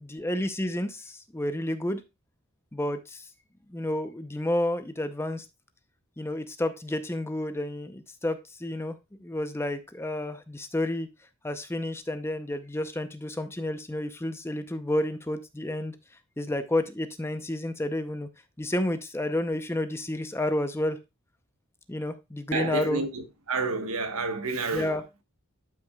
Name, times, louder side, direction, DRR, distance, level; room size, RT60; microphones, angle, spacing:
voice 1, 0.0-2.0 2.7-3.3 3.7-5.5 6.2-11.1 11.4-16.0 16.4-18.3 18.6-21.0 21.9-23.0 24.7-25.0, left 1 dB, 10° left, 0.6 m, -30 dB
voice 2, 22.5-25.0, right 3 dB, 75° right, 1.3 m, -30 dB
11.5 x 6.0 x 2.3 m
head